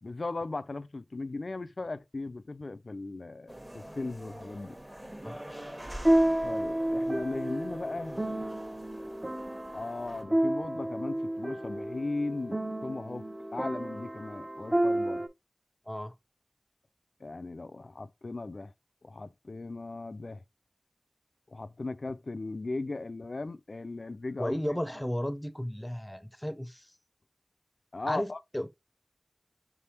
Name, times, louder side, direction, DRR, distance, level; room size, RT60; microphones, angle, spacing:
voice 1, 0.0-4.8 6.4-8.2 9.7-13.2 13.5-15.2 17.2-18.7 19.0-20.4 21.5-24.6 27.9-28.4, left 3 dB, 85° left, 0.3 m, -37 dB
sound 1, 3.5-10.2, right 1 dB, 20° right, 1.1 m, -46 dB
sound 2, 5.8-15.3, right 1 dB, 40° right, 0.8 m, -31 dB
voice 2, 24.4-26.9 28.1-28.7, equal, 15° left, 0.6 m, -34 dB
5.3 x 3.4 x 2.9 m
wide cardioid pair, 40°, 0 cm